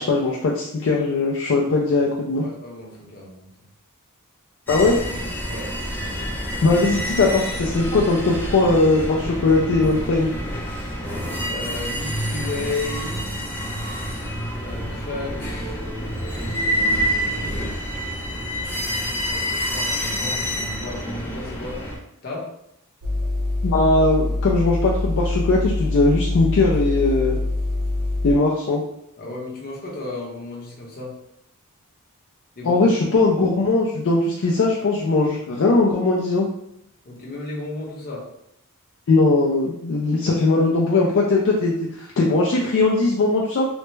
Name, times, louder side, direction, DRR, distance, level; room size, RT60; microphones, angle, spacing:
voice 1, 0.0-2.5 4.7-5.0 6.6-10.3 23.6-27.4 28.2-28.8 32.6-36.5 39.1-43.7, left 3 dB, 60° left, -2 dB, 0.4 m, -19 dB
voice 2, 2.0-3.5 5.4-5.7 11.5-13.2 14.6-15.8 16.3-17.9 19.2-21.8 22.2-22.5 29.2-31.2 32.6-32.9 37.0-38.2, left 2 dB, 45° left, -3 dB, 0.9 m, -34 dB
sound 1, 4.7-22.0, equal, 10° left, 0.5 m, -27 dB
sound 2, 23.0-28.3, left 2 dB, 85° right, 0.6 m, -24 dB
3.2 x 2.1 x 3.2 m, 0.79 s
head